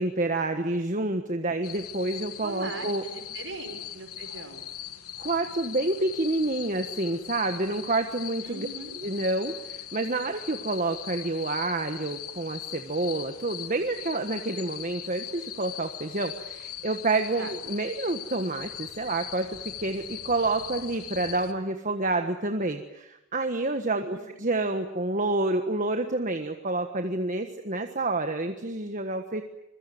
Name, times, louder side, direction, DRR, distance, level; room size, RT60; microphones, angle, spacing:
voice 1, 0.0-3.0 5.2-8.7 8.9-19.5 19.8-29.4, right 2 dB, 35° right, 6 dB, 1.4 m, -28 dB
sound 1, 1.6-21.5, left 11 dB, 80° left, 1.9 m, -40 dB
voice 2, 2.4-4.6 8.4-9.0 17.4-17.5 24.0-24.3, right 3 dB, 55° right, 7 dB, 5.7 m, -40 dB
26.0 x 22.5 x 9.4 m, 0.90 s
head